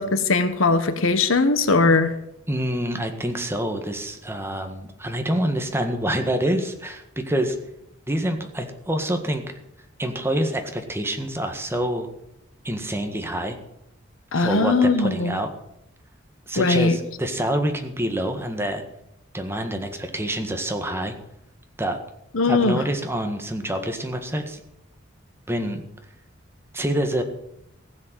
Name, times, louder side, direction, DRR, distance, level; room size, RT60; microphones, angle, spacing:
voice 1, 0.0-2.1 14.3-15.4 16.6-17.0 22.3-22.8, left 3 dB, 90° left, 11 dB, 1.3 m, -20 dB
voice 2, 2.5-7.5 8.1-9.4 10.0-12.1 12.6-13.6 14.3-15.5 16.5-18.8 19.3-21.1 21.8-22.0 22.4-24.6 25.5-25.8 26.7-27.2, right 1 dB, 10° right, 5 dB, 1.7 m, -26 dB
15.5 x 7.8 x 7.6 m, 0.80 s
head